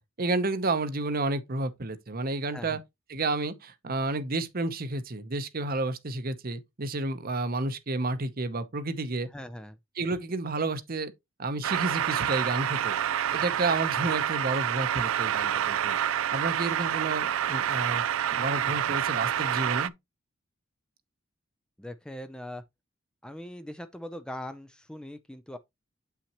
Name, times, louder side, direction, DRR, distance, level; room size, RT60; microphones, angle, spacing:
voice 1, 0.2-2.8 3.1-9.3 10.0-11.1 11.4-13.0 13.3-16.0 16.3-18.0 18.3-19.9, right 2 dB, 45° right, 0.8 m, -31 dB
voice 2, 9.3-9.8 21.8-22.6 23.2-25.6, left 1 dB, 5° left, 0.4 m, -41 dB
sound 1, 11.6-19.9, right 10 dB, 80° right, 0.4 m, -28 dB
8.4 x 5.8 x 3.0 m
head